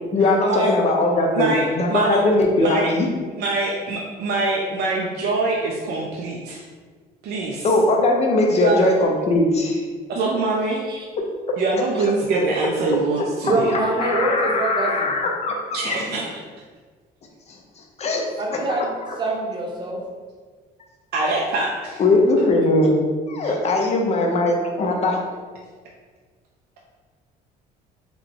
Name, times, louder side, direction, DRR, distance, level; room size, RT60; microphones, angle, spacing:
voice 1, 0.1-3.1 7.6-9.8 14.0-15.5 15.8-16.0 18.0-18.2 22.0-23.0 23.3-25.2, left 2 dB, 40° left, 1 dB, 0.7 m, -20 dB
voice 2, 1.3-2.2 2.6-2.9 3.4-6.6 7.2-7.7 8.5-8.8 10.1-10.8 11.6-13.7 15.7-16.3 21.1-22.0 23.4-23.5, right 3 dB, 70° right, -2 dB, 0.5 m, -24 dB
voice 3, 13.4-15.1 18.4-18.9 19.2-20.0, right 2 dB, 25° right, -1 dB, 0.8 m, -24 dB
3.6 x 2.2 x 3.7 m, 1.5 s
cardioid pair, 110°, 17 cm